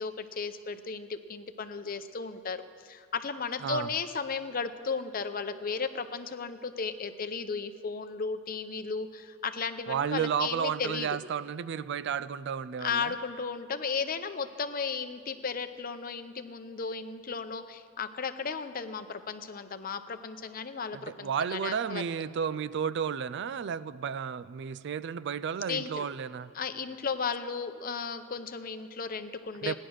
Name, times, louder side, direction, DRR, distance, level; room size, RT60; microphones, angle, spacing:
voice 1, 0.0-11.2 12.8-22.0 25.7-26.1 26.5-29.8, left 5 dB, 45° left, 10 dB, 0.7 m, -35 dB
voice 2, 9.9-13.2 20.9-26.5 29.6-29.8, right 7 dB, 60° right, 16 dB, 0.4 m, -32 dB
16.5 x 10.5 x 6.3 m, 2.3 s
head